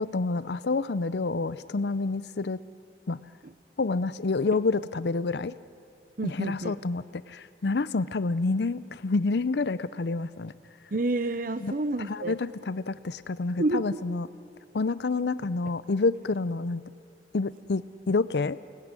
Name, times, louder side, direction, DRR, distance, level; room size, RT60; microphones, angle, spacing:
voice 1, 0.0-2.6 3.1-3.2 3.8-5.5 6.2-10.5 11.6-11.7 12.1-14.3 14.7-16.8 17.3-18.6, left 3 dB, 70° left, 16 dB, 0.6 m, -28 dB
voice 2, 6.2-6.8 10.9-12.4 13.6-14.0, right 2 dB, 50° right, 12 dB, 0.7 m, -29 dB
29.5 x 19.5 x 9.7 m, 2.5 s
head